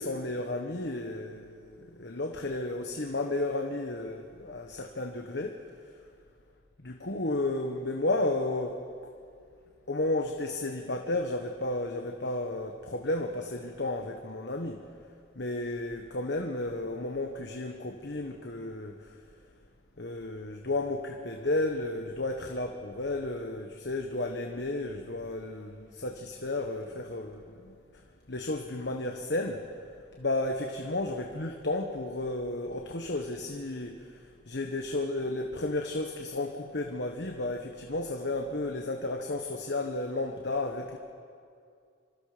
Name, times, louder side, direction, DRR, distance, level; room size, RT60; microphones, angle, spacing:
voice 1, 0.0-5.6 6.8-8.8 9.9-14.8 15.3-19.1 20.0-27.7 28.3-29.6 30.2-41.0, left 2 dB, 60° left, 3 dB, 1.3 m, -33 dB
26.0 x 25.0 x 5.1 m, 2.3 s
head